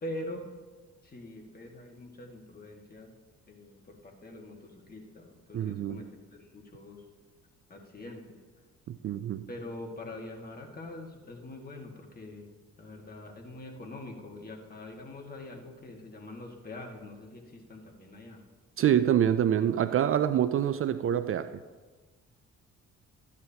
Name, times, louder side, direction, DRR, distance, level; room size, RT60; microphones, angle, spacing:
voice 1, 0.0-0.5 1.0-3.1 3.5-7.0 7.7-8.2 9.5-12.5 12.8-18.4, left 1 dB, 30° left, 1.8 m, -44 dB
voice 2, 5.5-6.0 8.9-9.5 18.8-21.5, right 10 dB, 45° right, 0.4 m, -26 dB
13.5 x 9.5 x 2.9 m
cardioid pair, 90°, 30 cm